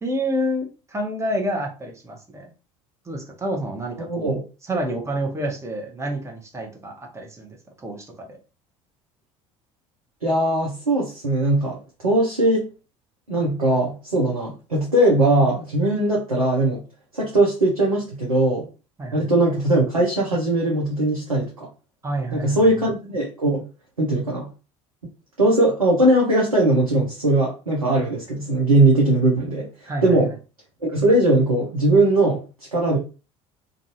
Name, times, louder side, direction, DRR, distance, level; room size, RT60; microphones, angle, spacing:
voice 1, 0.0-2.5 3.1-8.4 19.0-19.3 22.0-22.6 29.9-30.2, right 1 dB, 15° right, 1 dB, 0.9 m, -29 dB
voice 2, 4.1-4.4 10.2-12.7 13.3-16.8 17.1-18.7 19.1-21.7 22.3-23.6 24.0-24.5 25.4-30.3 30.8-32.4 32.7-33.0, right 1 dB, 85° right, -3 dB, 0.7 m, -20 dB
2.5 x 2.3 x 2.8 m, 0.33 s
figure-of-eight pair, 65°, 18 cm